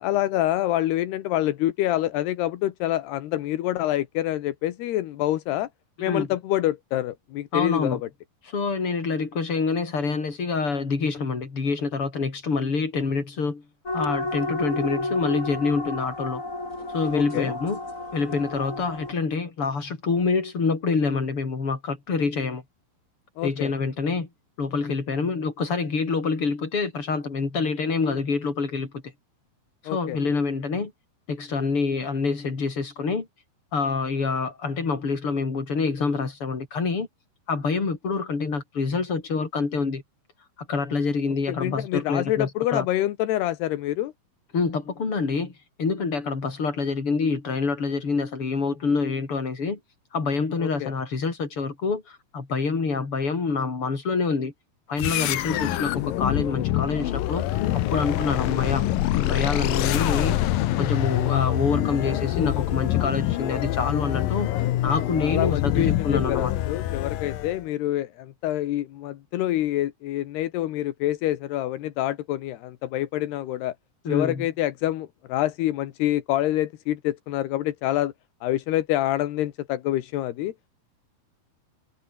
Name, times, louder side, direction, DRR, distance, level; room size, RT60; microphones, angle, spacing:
voice 1, 0.0-5.7 6.0-8.1 17.1-17.5 23.4-23.7 29.9-30.2 41.5-44.1 50.6-50.9 55.5-55.6 65.2-73.8 74.1-78.1 78.4-80.5, left 14 dB, 85° left, 3.4 m, -26 dB
voice 2, 7.5-8.0 8.5-13.6 13.9-16.4 16.9-17.8 18.1-22.6 23.4-24.3 24.6-28.9 29.8-30.9 31.3-33.3 33.7-37.1 37.5-40.0 40.7-42.8 44.5-45.5 45.8-49.8 50.1-54.5 54.9-57.6 57.9-58.9 59.1-64.5 64.8-66.5 74.0-74.5, left 4 dB, 35° left, 5.0 m, -26 dB
sound 1, 13.9-19.1, left 2 dB, 20° left, 6.4 m, -31 dB
sound 2, 55.0-67.6, left 14 dB, 70° left, 2.7 m, -25 dB
omnidirectional pair, 4.6 m